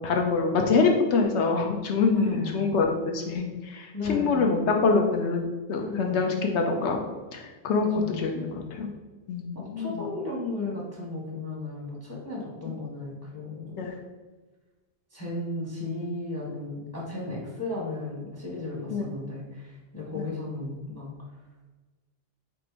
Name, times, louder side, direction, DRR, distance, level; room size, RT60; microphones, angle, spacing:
voice 1, 0.0-7.0 7.3-8.9 9.3-9.9 13.8-14.0 18.9-19.1 20.2-20.3, left 4 dB, 75° left, 2 dB, 0.8 m, -25 dB
voice 2, 2.1-2.6 3.9-4.5 5.8-6.3 7.8-8.6 9.5-13.9 15.1-21.1, left 2 dB, 25° left, -4 dB, 0.7 m, -35 dB
3.6 x 2.5 x 4.5 m, 1.3 s
omnidirectional pair, 1.2 m